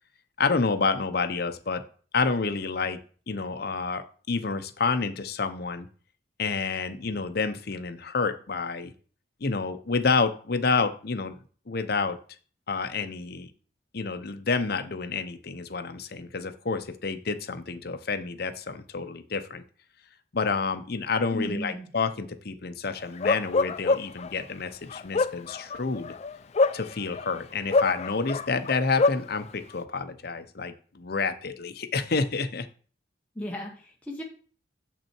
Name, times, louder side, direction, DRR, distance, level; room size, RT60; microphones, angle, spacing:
voice 1, 0.4-1.8 2.1-3.0 3.3-5.9 6.4-8.9 9.4-11.4 11.7-12.2 12.7-13.5 13.9-19.6 20.3-26.1 26.7-32.7, left 4 dB, 55° left, 8 dB, 0.7 m, -29 dB
voice 2, 21.3-21.9 33.3-34.2, left 1 dB, 10° left, -2 dB, 1.3 m, -35 dB
Bark, 23.2-24.3 24.9-27.3 27.7-29.3, left 3 dB, 35° left, 0.3 m, -25 dB
7.2 x 6.0 x 4.5 m, 0.42 s
head